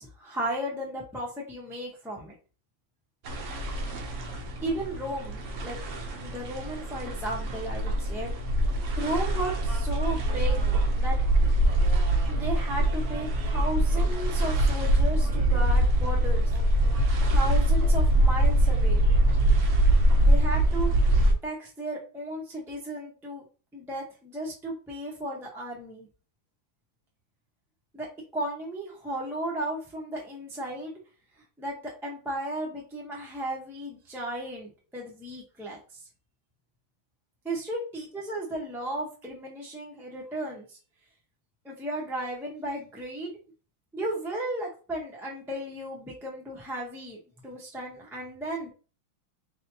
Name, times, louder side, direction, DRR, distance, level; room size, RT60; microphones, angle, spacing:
voice 1, 0.0-2.3 4.6-8.3 9.0-11.2 12.3-16.5 17.3-19.0 20.2-21.1 21.4-23.4 23.7-26.1 27.9-28.1 28.3-31.0 31.6-35.8 37.4-40.8 41.6-43.3 43.9-48.7, right 1 dB, 5° right, -2 dB, 0.4 m, -35 dB
sound 1, 3.2-21.3, right 1 dB, 65° right, 0.7 m, -24 dB
4.1 x 3.2 x 2.8 m, 0.35 s
omnidirectional pair, 2.2 m